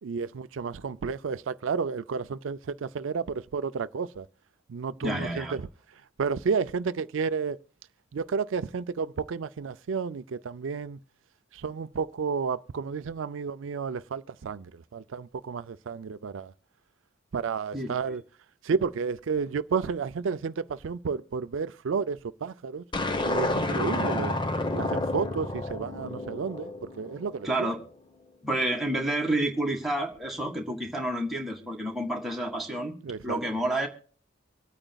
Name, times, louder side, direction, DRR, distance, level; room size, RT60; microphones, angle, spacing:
voice 1, 0.0-4.3 4.7-7.6 8.1-11.0 11.5-16.5 17.3-18.2 18.6-22.8 23.2-24.4 24.7-27.7 33.0-33.4, right 5 dB, 80° right, 0.4 m, -31 dB
voice 2, 5.0-5.5 17.7-17.9 27.4-27.8 28.4-33.0 33.2-33.9, right 1 dB, ahead, 1.8 m, -29 dB
sound 1, 22.9-27.3, left 2 dB, 25° left, 0.9 m, -30 dB
25.5 x 8.9 x 2.3 m
head